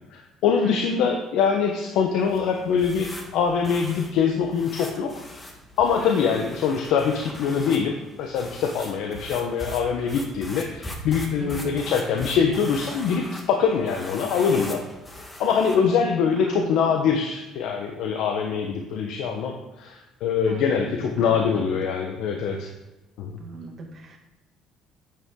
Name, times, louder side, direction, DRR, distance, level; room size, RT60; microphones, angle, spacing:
voice 1, 0.1-5.1 5.8-14.8 15.4-22.7 23.2-23.3, left 6 dB, 75° left, 3 dB, 1.0 m, -24 dB
voice 2, 0.6-1.0 6.0-6.5 11.4-11.9 15.7-17.0 20.5-21.7 23.4-24.2, right 3 dB, 40° right, 0 dB, 2.1 m, -39 dB
sound 1, 2.2-16.0, left 1 dB, 15° left, 1.5 m, -40 dB
9.1 x 8.5 x 3.8 m, 1.0 s
cardioid pair, 115°, 0 cm